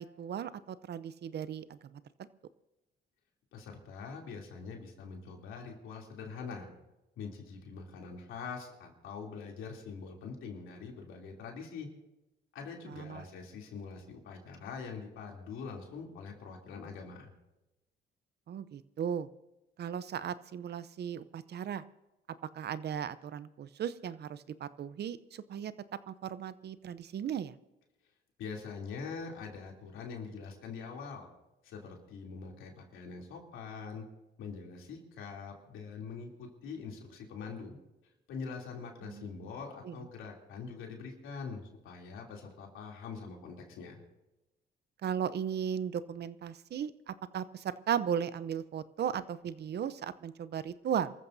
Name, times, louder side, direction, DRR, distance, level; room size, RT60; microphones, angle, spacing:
voice 1, 0.0-2.0 12.9-13.2 18.5-19.3 19.8-21.8 22.5-25.7 26.1-27.5 39.0-39.3 39.8-40.0 45.0-51.1, right 8 dB, 55° right, 15 dB, 0.7 m, -36 dB
voice 2, 3.5-6.7 7.2-11.9 12.5-17.3 28.4-31.3 31.6-34.0 34.4-37.8 38.3-44.0, left 5 dB, 90° left, 0 dB, 3.1 m, -44 dB
28.5 x 14.5 x 2.7 m, 0.98 s
cardioid pair, 90°, 20 cm